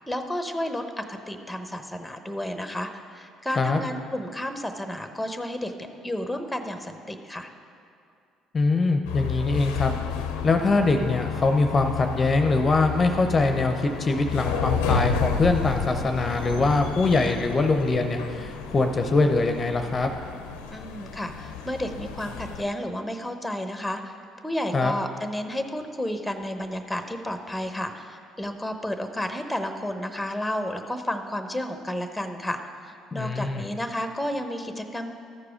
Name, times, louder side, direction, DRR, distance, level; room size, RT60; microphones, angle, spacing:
voice 1, 0.1-5.7 6.0-7.5 20.7-35.2, left 1 dB, 5° left, 7 dB, 0.8 m, -32 dB
voice 2, 8.5-9.9 10.4-20.1 24.7-24.9 33.1-33.7, left 3 dB, 35° left, 6 dB, 0.6 m, -23 dB
sound 1, 9.0-22.6, left 6 dB, 85° left, 0.5 m, -31 dB
13.0 x 4.8 x 5.1 m, 2.4 s
hypercardioid pair, 60°, 0 cm